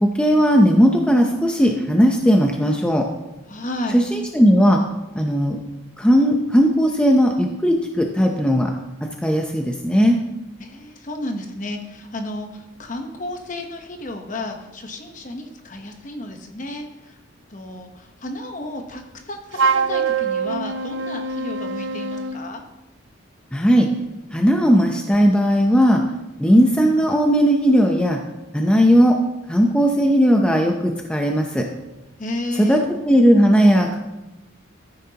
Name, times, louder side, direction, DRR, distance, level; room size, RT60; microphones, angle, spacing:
voice 1, 0.0-3.1 3.9-4.8 5.2-5.6 6.0-8.7 9.0-10.2 23.5-23.9 24.3-26.0 26.4-28.2 28.5-29.2 29.5-31.7 32.6-34.0, equal, 5° left, 2 dB, 0.6 m, -17 dB
voice 2, 3.5-4.0 10.6-17.2 17.5-22.6 32.2-32.8, left 1 dB, 40° left, 4 dB, 1.0 m, -32 dB
Wind instrument woodwind instrument, 19.5-22.4, right 5 dB, 65° right, 0.5 m, -23 dB
13.0 x 9.4 x 2.9 m, 0.99 s
head